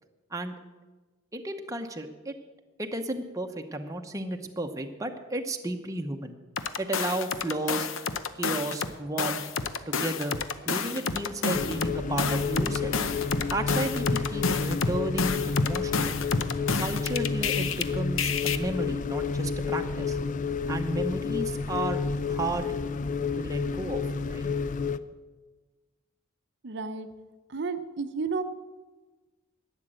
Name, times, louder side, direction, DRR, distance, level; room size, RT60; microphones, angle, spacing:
voice 1, 1.3-2.3 2.8-6.3 6.8-7.9 8.4-9.4 9.9-10.4 10.7-13.0 13.5-16.2 16.8-20.2 20.7-22.7 23.4-24.5, right 1 dB, 15° right, 4 dB, 0.8 m, -33 dB
sound 1, 6.6-8.9 9.2-17.8 18.2-18.6, left 5 dB, 80° left, 0.7 m, -29 dB
sound 2, 11.5-25.0, left 5 dB, 40° left, 0.4 m, -30 dB
voice 2, 26.6-27.1 27.5-28.4, right 4 dB, 60° right, 8 dB, 0.7 m, -31 dB
12.0 x 9.1 x 7.6 m, 1.3 s
head